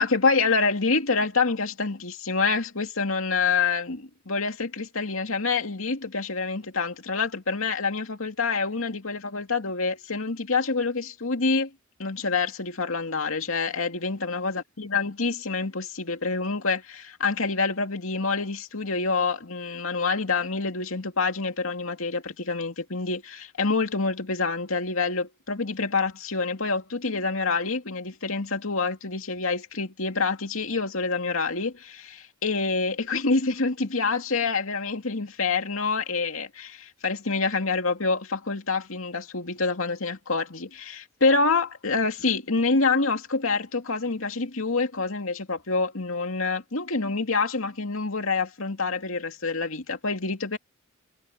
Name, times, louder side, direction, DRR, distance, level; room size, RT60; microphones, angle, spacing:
voice 1, 0.0-11.7 12.0-50.6, left 4 dB, 80° left, 2.5 m, -27 dB
head